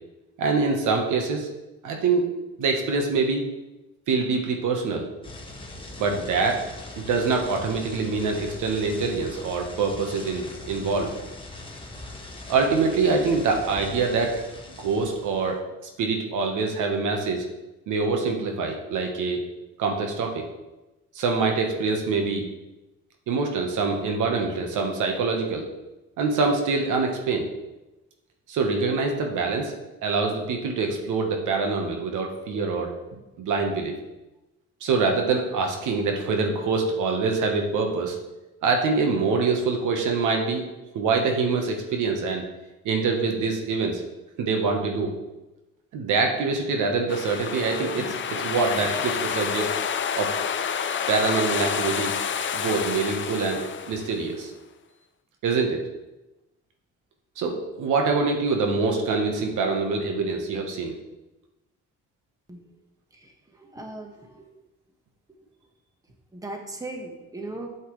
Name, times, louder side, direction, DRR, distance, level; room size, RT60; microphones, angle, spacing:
voice 1, 0.4-1.5 1.8-2.3 2.6-3.5 4.1-5.1 6.0-6.6 7.0-11.1 12.5-14.3 14.8-15.6 16.0-17.4 17.9-19.4 19.8-20.4 21.1-22.4 23.3-25.6 26.2-27.5 28.5-29.7 30.0-32.9 33.4-33.9 34.8-38.2 38.6-40.6 40.9-42.4 42.8-44.0 44.4-45.1 45.9-49.7 50.2-50.3 51.1-52.1 52.5-54.5 55.4-55.9 57.4-60.9, right 4 dB, 80° right, 3 dB, 1.2 m, -25 dB
sound 1, 5.2-15.5, left 2 dB, 15° left, 1.4 m, -41 dB
sound 2, 47.1-54.4, left 7 dB, 40° left, 0.6 m, -29 dB
voice 2, 63.1-64.4 66.3-67.7, right 2 dB, 10° right, 2 dB, 1.3 m, -38 dB
8.3 x 7.2 x 3.2 m, 1.0 s
cardioid pair, 90°, 30 cm